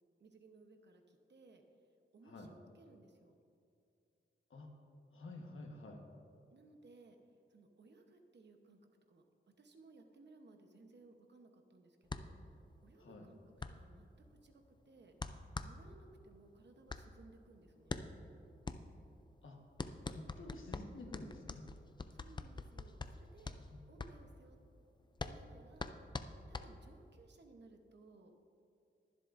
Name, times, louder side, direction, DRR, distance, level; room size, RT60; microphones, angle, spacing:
voice 1, 0.2-1.6 2.1-3.4 6.5-7.2 7.5-8.8 9.1-9.2 9.6-12.3 12.8-13.4 13.7-15.1 15.6-18.1 22.1-23.6 23.9-24.6 25.2-26.2 26.5-28.6, right 3 dB, 60° right, 5 dB, 1.0 m, -61 dB
voice 2, 5.1-6.0 13.0-13.3 19.4-19.6 20.1-21.7 23.7-23.8, left 2 dB, 80° left, 1 dB, 1.4 m, -50 dB
sound 1, 12.1-27.2, left 3 dB, 25° left, 0.4 m, -46 dB
22.0 x 7.5 x 2.6 m, 2.5 s
wide cardioid pair, 155°, 20 cm